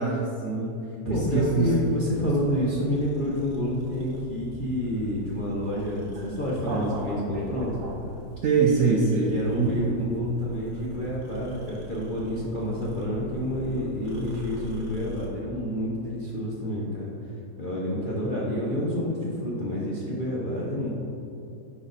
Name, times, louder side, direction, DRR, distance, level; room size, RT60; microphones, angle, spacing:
voice 1, 0.0-1.7 2.2-2.4 5.7-5.8 6.2-6.3 6.7-8.0 8.4-9.8, right 4 dB, 65° right, -2 dB, 0.8 m, -26 dB
voice 2, 1.0-7.7 9.3-17.1 17.6-20.9, left 1 dB, 50° left, -6 dB, 0.6 m, -28 dB
sound 1, 1.3-15.3, right 3 dB, 80° right, 1.7 m, -43 dB
9.2 x 4.1 x 4.0 m, 2.9 s
omnidirectional pair, 2.0 m